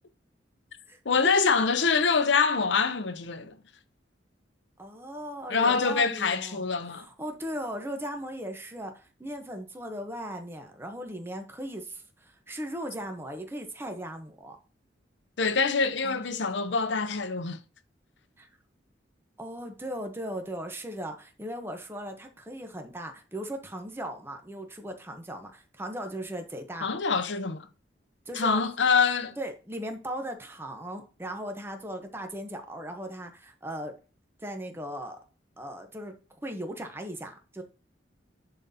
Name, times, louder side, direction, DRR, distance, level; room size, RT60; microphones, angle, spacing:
voice 1, 1.0-3.5 5.5-7.1 15.4-17.6 26.8-27.7 28.3-29.4, left 5 dB, 80° left, 0.7 m, -25 dB
voice 2, 4.8-14.6 16.0-16.3 18.4-18.5 19.4-27.0 28.3-28.6 29.4-33.9 34.4-35.2 35.6-36.1 36.4-37.6, equal, 15° right, 0.9 m, -38 dB
11.0 x 3.9 x 2.8 m
head